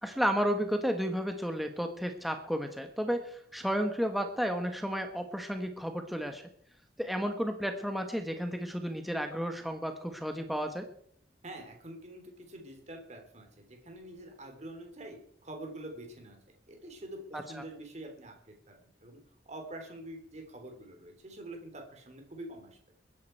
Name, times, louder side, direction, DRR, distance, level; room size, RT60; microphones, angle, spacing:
voice 1, 0.0-6.4 7.0-10.9 17.3-17.6, equal, ahead, 5 dB, 1.2 m, -32 dB
voice 2, 11.4-16.4 16.7-19.2 19.4-22.8, right 1 dB, 40° right, 3 dB, 3.4 m, -46 dB
21.5 x 10.5 x 4.6 m, 0.66 s
head